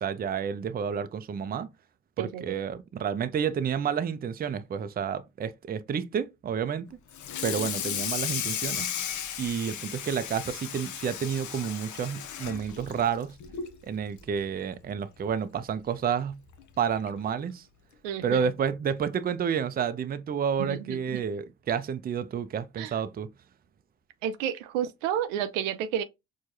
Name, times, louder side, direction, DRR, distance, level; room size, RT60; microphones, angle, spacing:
voice 1, 0.0-1.7 2.2-6.9 7.4-8.9 9.4-13.3 13.8-16.4 16.8-17.6 18.2-23.3, right 7 dB, 25° right, 0.4 m, -30 dB
voice 2, 2.2-2.6 18.0-18.5 20.6-21.2 22.8-22.9 24.2-26.0, right 10 dB, 80° right, 0.5 m, -31 dB
Water tap faucet / Sink (filling or washing), 7.1-13.8 14.2-14.4 14.8-14.9 15.3-15.4 16.5-16.6 17.1-17.3, left 9 dB, 50° left, 0.7 m, -35 dB
4.5 x 2.3 x 2.6 m
hypercardioid pair, 50°, 39 cm